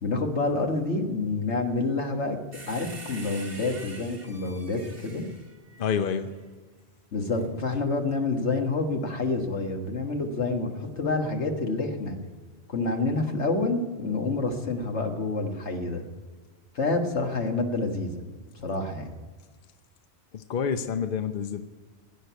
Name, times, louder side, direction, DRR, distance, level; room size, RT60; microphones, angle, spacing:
voice 1, 0.0-2.4 2.7-5.3 7.1-12.2 12.7-16.0 16.8-18.2 18.5-19.1, left 3 dB, 90° left, 4 dB, 1.9 m, -28 dB
sound 1, 2.5-6.3 7.3-7.5, right 2 dB, 55° right, 2.3 m, -45 dB
voice 2, 5.8-6.3 20.3-21.6, left 7 dB, 55° left, 8 dB, 0.9 m, -28 dB
16.5 x 6.6 x 9.3 m, 1.4 s
omnidirectional pair, 1.1 m